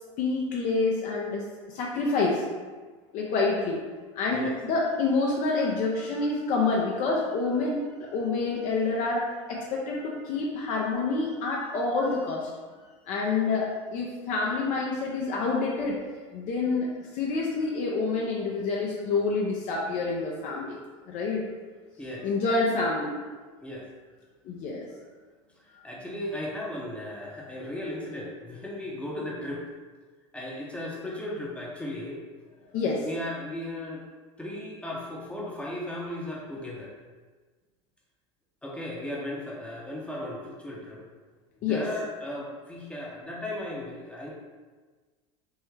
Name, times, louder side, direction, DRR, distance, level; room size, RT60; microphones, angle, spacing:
voice 1, 0.2-2.4 3.1-3.8 4.1-12.5 13.1-16.0 16.3-16.9 17.1-20.8 21.1-21.4 22.2-23.1 24.4-24.9 32.7-33.1 41.6-41.8, left 3 dB, 50° left, -2 dB, 0.5 m, -27 dB
voice 2, 22.0-22.3 23.6-23.9 25.6-29.7 30.3-32.2 33.0-34.0 34.4-36.9 38.6-41.0 41.7-44.3, left 1 dB, 5° left, -4 dB, 0.7 m, -36 dB
3.5 x 2.1 x 3.1 m, 1.4 s
hypercardioid pair, 90°, 16 cm